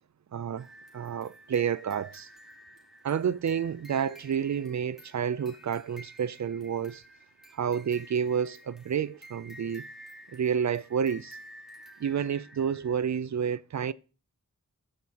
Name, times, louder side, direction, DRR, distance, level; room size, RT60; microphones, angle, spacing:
voice 1, 0.3-0.7 0.9-2.3 3.0-7.0 7.5-9.9 10.3-11.4 12.0-13.9, right 7 dB, 55° right, 0.4 m, -30 dB
sound 1, 0.6-13.2, equal, ahead, 2.1 m, -51 dB
10.5 x 7.8 x 2.9 m
wide cardioid pair, 50°, 33 cm